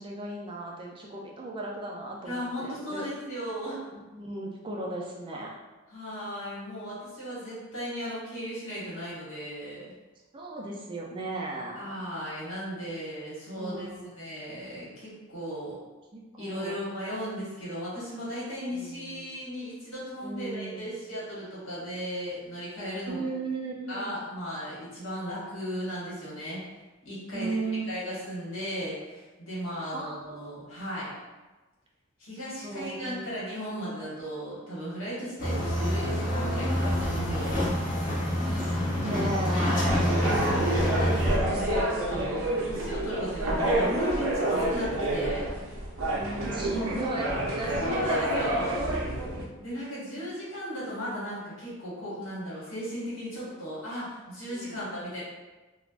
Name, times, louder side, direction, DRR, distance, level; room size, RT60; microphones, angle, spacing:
voice 1, 0.0-3.1 4.1-5.5 10.3-11.9 13.6-14.1 16.1-16.8 17.1-17.2 18.7-19.4 20.2-20.9 23.1-24.2 27.3-27.9 29.9-30.5 32.6-33.2 38.4-40.1 46.0-49.0 53.5-53.6 54.5-54.8, right 2 dB, 25° right, -2 dB, 0.3 m, -36 dB
voice 2, 2.2-3.9 5.9-9.8 11.7-13.9 14.1-15.8 16.4-23.2 23.9-26.6 27.0-27.6 27.9-31.1 32.2-37.6 39.6-45.5 47.6-48.8 49.6-55.2, equal, 70° left, -8 dB, 1.3 m, -36 dB
sound 1, 35.4-41.4, equal, 40° left, 0.8 m, -27 dB
sound 2, 39.8-49.4, right 1 dB, 80° right, 0.5 m, -28 dB
3.2 x 2.1 x 2.4 m, 1.2 s
head